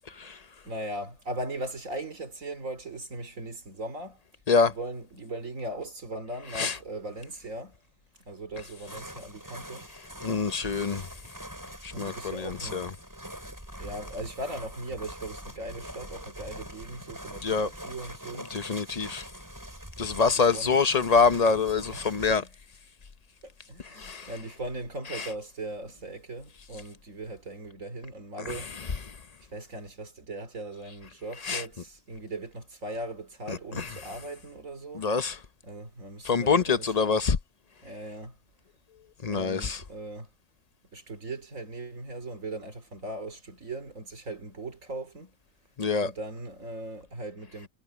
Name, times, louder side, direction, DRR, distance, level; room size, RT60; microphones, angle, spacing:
voice 1, 0.6-4.2 4.6-7.8 8.3-9.9 11.9-12.9 13.8-18.5 20.2-20.8 21.9-22.5 23.4-28.8 29.5-35.1 35.6-37.2 37.8-38.4 39.3-40.3 40.9-45.4 46.0-47.7, right 2 dB, 75° right, 3.8 m, -39 dB
sound 1, 8.9-22.4, equal, 15° right, 8.0 m, -43 dB
voice 2, 10.2-11.0 11.8-12.9 17.4-17.7 18.5-19.2 20.0-22.4 24.0-24.3 25.1-25.3 28.5-28.6 31.4-31.6 33.5-33.9 34.9-35.4 36.2-37.4 39.2-39.8 45.8-46.1, left 5 dB, 40° left, 0.7 m, -25 dB
omnidirectional pair, 1.4 m